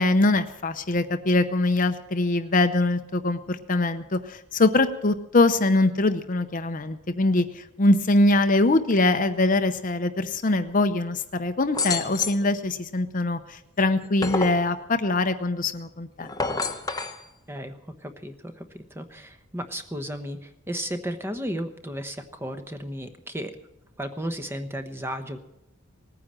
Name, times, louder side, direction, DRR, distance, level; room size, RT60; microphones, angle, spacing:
voice 1, 0.0-16.3, left 2 dB, 40° left, 9 dB, 0.7 m, -23 dB
sound 1, 11.7-12.5 13.8-14.6 16.2-17.2, left 3 dB, 15° left, 1.0 m, -29 dB
voice 2, 17.5-23.5 24.0-25.4, equal, 10° right, 7 dB, 1.0 m, -34 dB
19.0 x 9.8 x 7.5 m, 0.87 s
head